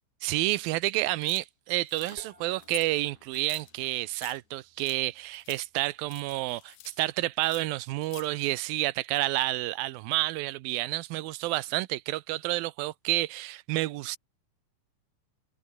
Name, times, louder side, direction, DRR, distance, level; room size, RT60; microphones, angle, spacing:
voice 1, 0.2-14.2, right 18 dB, 85° right, 2.6 m, -30 dB
sound 1, 1.2-1.5 1.9-2.2 2.6-2.9 3.3-4.4 4.8-5.0 5.3-5.6 6.0-7.0 7.3-8.3, left 17 dB, 75° left, 1.9 m, -47 dB
sound 2, 2.1-5.0 5.2-5.3 6.4-6.5 6.7-7.6 8.1-8.2 9.7-10.9 11.5-11.8 12.9-13.5, left 5 dB, 55° left, 5.9 m, -63 dB
sound 3, 2.2-7.7, right 1 dB, 10° right, 5.4 m, -61 dB
omnidirectional pair, 4.1 m